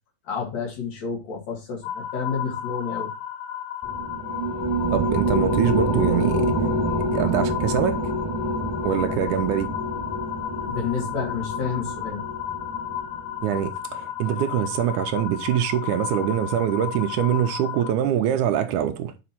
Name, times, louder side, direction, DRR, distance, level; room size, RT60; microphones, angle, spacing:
voice 1, 0.3-3.1 10.6-12.2, left 5 dB, 60° left, 3.1 m, -30 dB
sound 1, 1.8-17.9, left 10 dB, 75° left, 1.8 m, -33 dB
sound 2, 3.8-13.6, right 1 dB, 5° right, 3.6 m, -27 dB
voice 2, 4.9-6.5 7.1-8.0 8.8-9.7 13.4-19.1, right 10 dB, 80° right, 2.0 m, -24 dB
6.0 x 5.1 x 4.1 m
omnidirectional pair, 3.7 m